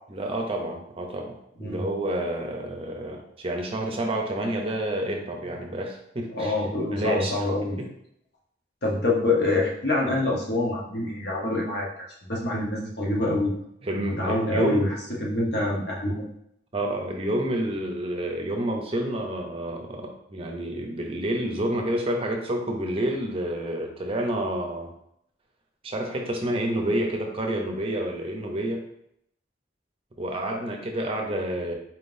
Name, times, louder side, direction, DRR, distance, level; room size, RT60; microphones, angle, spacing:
voice 1, 0.1-7.5 7.8-7.9 13.8-14.9 16.7-24.9 25.8-28.9 30.2-31.7, right 1 dB, 30° right, 2 dB, 0.6 m, -29 dB
voice 2, 6.3-7.8 8.8-11.9 12.3-13.5 14.0-14.9 15.2-16.3, left 2 dB, 60° left, -3 dB, 1.1 m, -25 dB
4.2 x 3.6 x 2.6 m, 0.75 s
head